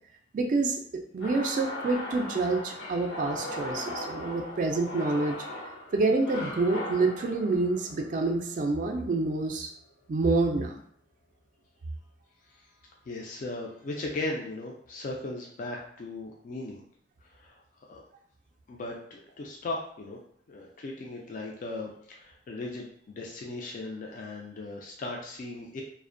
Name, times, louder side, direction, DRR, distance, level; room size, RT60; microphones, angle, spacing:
voice 1, 0.3-5.5 5.9-9.7 10.1-10.8, right 3 dB, 45° right, 3 dB, 0.3 m, -27 dB
sound 1, 1.2-9.4, left 1 dB, 85° left, 0.9 m, -39 dB
voice 2, 13.1-16.8 17.2-17.6 17.9-18.0 18.7-20.2 20.5-25.8, left 2 dB, 45° left, 0 dB, 0.3 m, -37 dB
2.4 x 2.1 x 2.5 m, 0.65 s
head